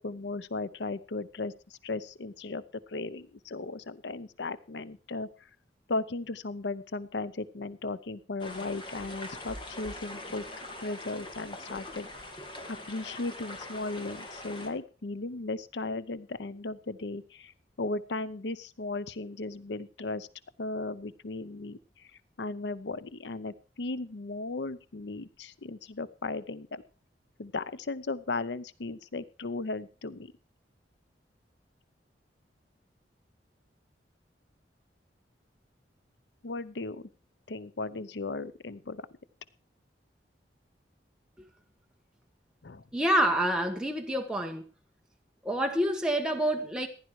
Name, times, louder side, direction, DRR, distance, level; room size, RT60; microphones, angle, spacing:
voice 1, 0.0-5.3 5.9-10.4 10.8-12.1 12.7-17.5 17.8-20.3 20.6-22.1 22.4-26.8 27.4-30.3 36.4-37.1 37.5-39.1 42.6-42.8, left 3 dB, 80° left, 0.7 m, -36 dB
sound 1, 8.4-14.7, left 1 dB, 30° left, 2.3 m, -42 dB
voice 2, 42.9-44.6 45.4-46.9, right 1 dB, 5° right, 1.4 m, -27 dB
15.5 x 11.0 x 4.7 m
head